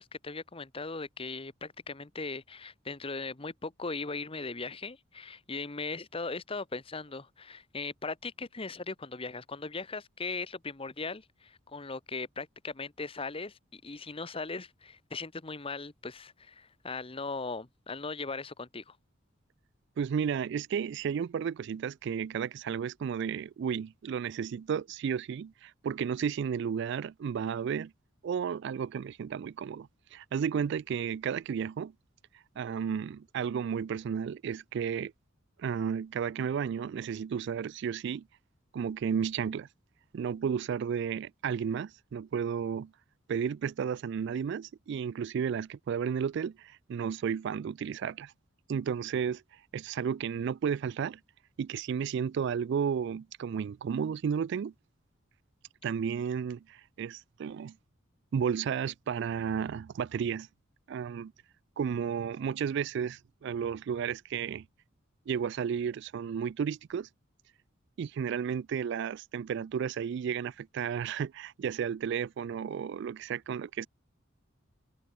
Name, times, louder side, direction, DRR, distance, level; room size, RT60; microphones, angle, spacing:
voice 1, 0.0-19.0, left 3 dB, 30° left, 1.1 m, -39 dB
voice 2, 20.0-27.9 28.2-31.9 32.6-35.1 35.6-38.3 38.7-39.7 40.1-42.9 43.3-48.3 48.7-49.4 49.7-51.2 51.6-54.7 55.8-57.8 58.3-60.5 60.9-61.3 61.8-64.7 65.3-67.1 68.0-73.9, right 7 dB, 60° right, 0.3 m, -33 dB
head